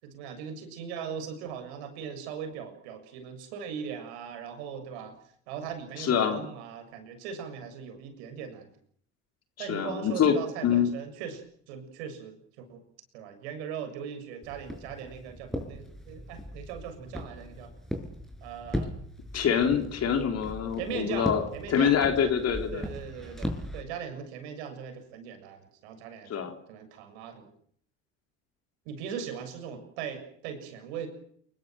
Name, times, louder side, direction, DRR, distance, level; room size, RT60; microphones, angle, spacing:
voice 1, 0.0-8.7 9.6-12.8 13.1-17.7 18.4-19.0 20.8-22.3 22.7-27.5 28.8-31.1, right 7 dB, 65° right, 7 dB, 7.0 m, -39 dB
voice 2, 6.0-6.4 9.6-10.3 10.6-10.9 19.3-21.4 21.7-22.9 26.3-26.5, left 8 dB, 45° left, 5 dB, 4.0 m, -25 dB
Walk footsteps, 14.4-23.8, equal, ahead, 6.5 m, -38 dB
29.5 x 21.0 x 7.8 m, 0.64 s
figure-of-eight pair, 60°, 35 cm